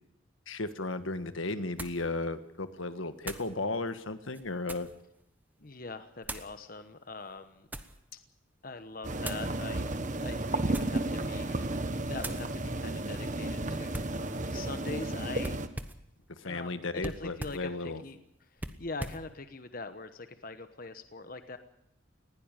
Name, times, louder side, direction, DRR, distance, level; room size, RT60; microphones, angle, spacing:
voice 1, 0.5-4.9 16.3-18.0, left 2 dB, 80° left, 10 dB, 1.5 m, -35 dB
sound 1, 0.6-0.7 1.8-2.1 3.2-3.5 4.2-5.0 6.2-6.5 7.3-8.0 9.2-9.5 10.6-11.1 11.5-11.8 12.2-12.5 13.9-14.2 15.4-16.1 17.0-17.7 18.6-19.3, right 1 dB, 10° right, 1.1 m, -41 dB
voice 2, 5.6-7.7 8.1-8.2 8.6-9.9 10.2-11.7 12.1-15.6 16.4-18.2 18.5-21.6, left 3 dB, 45° left, 9 dB, 1.1 m, -43 dB
sound 2, 9.0-15.7, right 2 dB, 40° right, 1.3 m, -33 dB
20.0 x 16.5 x 9.1 m, 0.80 s
head